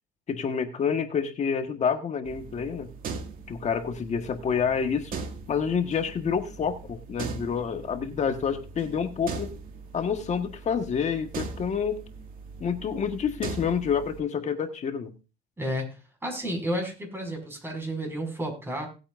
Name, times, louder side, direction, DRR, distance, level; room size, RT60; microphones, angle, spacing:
voice 1, 0.3-2.9 3.5-5.2 5.5-9.5 9.9-12.0 12.6-15.1, left 6 dB, 45° left, 7 dB, 1.5 m, -28 dB
sound 1, 2.2-14.2, right 4 dB, 55° right, 2.1 m, -40 dB
voice 2, 15.6-16.0 16.2-18.9, equal, 15° right, 2 dB, 5.8 m, -31 dB
18.5 x 8.6 x 2.6 m, 0.31 s
cardioid pair, 110°, 17 cm